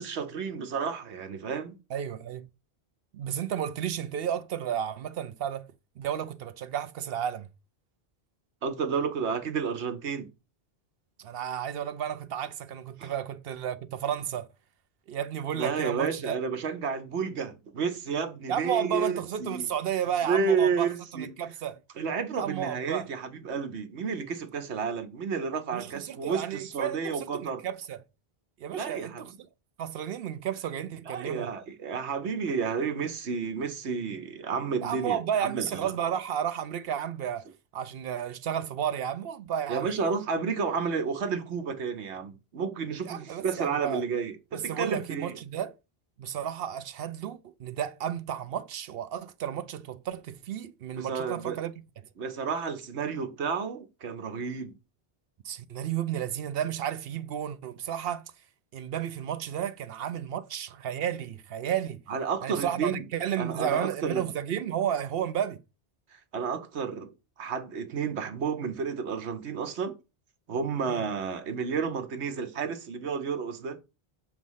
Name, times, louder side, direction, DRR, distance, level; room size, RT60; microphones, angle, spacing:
voice 1, 0.0-1.8 8.6-10.3 13.0-13.1 15.5-19.7 20.3-21.3 22.0-27.6 28.7-29.4 31.1-36.0 39.7-45.4 50.9-51.6 52.2-54.7 62.1-63.1 63.4-64.3 66.1-67.1 67.4-70.0 70.5-73.8, right 5 dB, 80° right, 1.2 m, -31 dB
voice 2, 1.9-2.5 3.1-7.5 11.2-14.5 15.1-16.4 18.5-21.8 22.4-23.1 25.7-28.0 28.6-29.3 29.8-31.5 34.8-37.5 37.7-39.9 43.1-44.0 44.5-45.7 46.2-51.7 55.4-58.2 58.7-62.0 62.4-65.6 70.9-71.0, right 9 dB, 65° right, 0.8 m, -32 dB
7.1 x 3.1 x 5.5 m
omnidirectional pair, 1.1 m